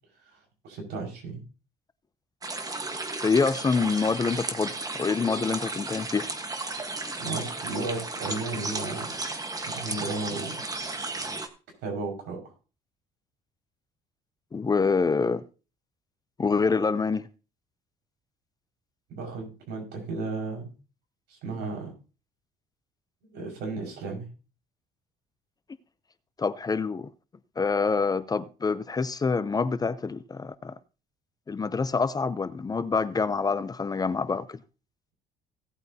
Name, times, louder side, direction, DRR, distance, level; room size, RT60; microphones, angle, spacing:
voice 1, 0.6-1.4 7.2-9.1 9.7-10.6 11.8-12.4 19.1-20.7 21.3-21.9 23.3-24.3, right 3 dB, 85° right, 5.3 m, -34 dB
sound 1, 2.4-11.5, right 3 dB, 20° right, 1.3 m, -34 dB
voice 2, 3.2-6.3 14.5-15.4 16.4-17.3 26.4-27.1 27.6-30.7 31.5-34.6, left 4 dB, 20° left, 0.6 m, -26 dB
17.0 x 8.3 x 2.8 m
cardioid pair, 110°, 17 cm